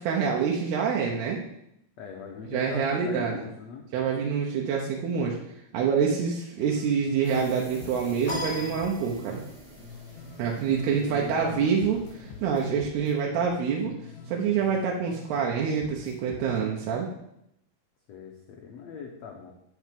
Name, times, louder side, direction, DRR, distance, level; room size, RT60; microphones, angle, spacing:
voice 1, 0.0-1.4 2.5-3.3 3.9-5.4 5.7-9.4 10.4-12.0 12.4-13.9 14.3-17.1, right 6 dB, 80° right, -2 dB, 3.1 m, -26 dB
voice 2, 2.0-3.9 10.7-11.9 18.1-19.5, left 6 dB, 90° left, 0 dB, 1.5 m, -40 dB
sound 1, 6.6-7.5 7.8-11.5 11.8-15.5 15.8-16.6, left 3 dB, 70° left, 3.3 m, -46 dB
sound 2, 7.2-12.7, equal, 15° right, 1.6 m, -49 dB
sound 3, 8.3-9.6, left 2 dB, 15° left, 1.4 m, -36 dB
8.2 x 6.1 x 7.5 m, 0.78 s
omnidirectional pair, 4.7 m